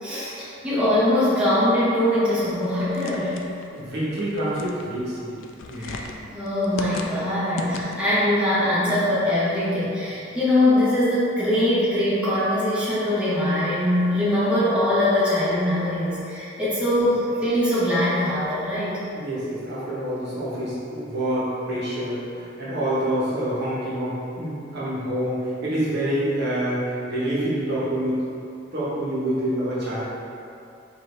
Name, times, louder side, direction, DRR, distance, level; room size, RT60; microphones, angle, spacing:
voice 1, 0.0-3.4 5.7-6.0 6.3-19.0, left 1 dB, 5° right, -11 dB, 1.0 m, -22 dB
sound 1, 2.4-8.2, left 4 dB, 70° left, 0.3 m, -39 dB
voice 2, 3.7-5.4 5.6-6.0 19.1-28.2 28.7-30.0, right 1 dB, 60° right, -9 dB, 1.0 m, -27 dB
4.9 x 2.6 x 3.2 m, 2.7 s
head